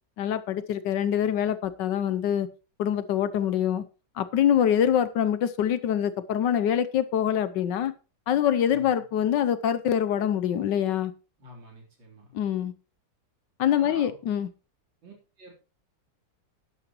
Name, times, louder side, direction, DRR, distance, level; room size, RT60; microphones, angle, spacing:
voice 1, 0.2-2.5 2.8-3.8 4.2-7.9 8.3-11.1 12.3-12.7 13.6-14.5, left 9 dB, 70° left, 14 dB, 1.3 m, -25 dB
voice 2, 8.7-9.0 11.4-12.3 13.7-14.2 15.0-15.5, right 1 dB, 75° right, -1 dB, 4.3 m, -48 dB
12.0 x 11.0 x 3.0 m, 0.33 s
omnidirectional pair, 2.1 m